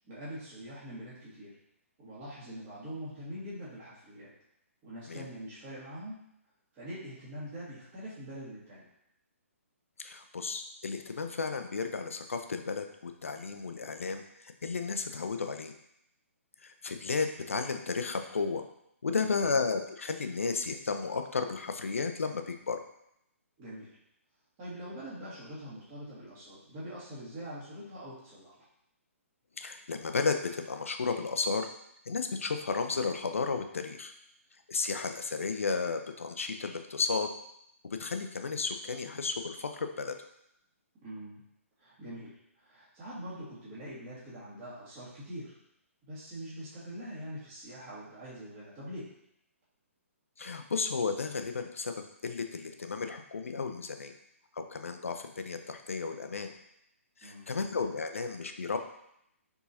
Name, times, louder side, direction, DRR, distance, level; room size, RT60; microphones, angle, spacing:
voice 1, 0.0-1.5 2.0-4.3 4.8-6.2 6.7-8.8 19.1-19.3 23.6-23.9 24.6-28.5 41.0-41.4 41.8-45.5 46.0-49.1 57.2-57.5, equal, 25° right, -9 dB, 1.7 m, -43 dB
voice 2, 10.0-15.7 16.6-18.6 19.0-22.8 29.6-31.7 32.1-34.1 34.7-37.3 38.0-40.2 50.4-51.9 52.2-54.1 54.5-56.5 57.2-58.8, left 4 dB, 65° left, 7 dB, 0.5 m, -33 dB
4.7 x 3.8 x 2.8 m, 0.77 s
figure-of-eight pair, 130°, 8 cm